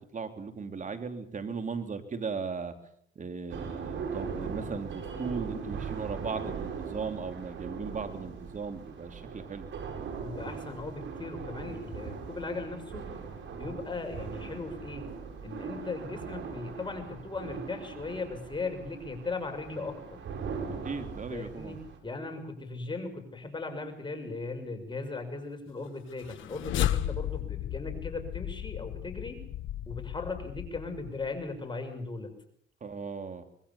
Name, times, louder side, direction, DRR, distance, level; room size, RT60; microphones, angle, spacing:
voice 1, 0.1-2.7 3.1-9.7 20.8-21.8 32.8-33.4, right 5 dB, 40° right, 7 dB, 3.2 m, -37 dB
sound 1, 3.5-22.0, right 5 dB, 70° right, 5.2 m, -40 dB
voice 2, 10.2-13.1 13.5-15.0 15.4-20.2 21.3-21.8 22.0-29.4 29.9-32.3, left 3 dB, 25° left, 5 dB, 6.0 m, -38 dB
sound 2, 26.1-31.4, left 12 dB, 80° left, 1.1 m, -34 dB
26.0 x 20.5 x 7.0 m, 0.65 s
cardioid pair, 90°, 20 cm